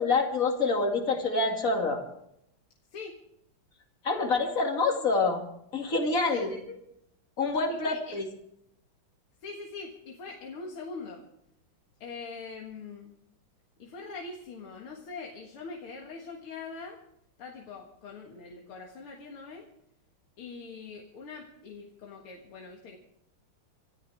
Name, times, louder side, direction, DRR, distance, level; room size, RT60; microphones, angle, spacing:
voice 1, 0.0-2.0 4.0-5.4 5.7-6.5 7.4-8.2, left 3 dB, 40° left, 2 dB, 2.8 m, -26 dB
voice 2, 6.3-6.8 7.7-8.2 9.4-11.2 12.0-13.1 13.8-17.0 17.4-19.7 20.4-23.0, left 4 dB, 90° left, 0 dB, 2.7 m, -42 dB
26.5 x 14.0 x 3.5 m, 0.76 s
omnidirectional pair, 2.3 m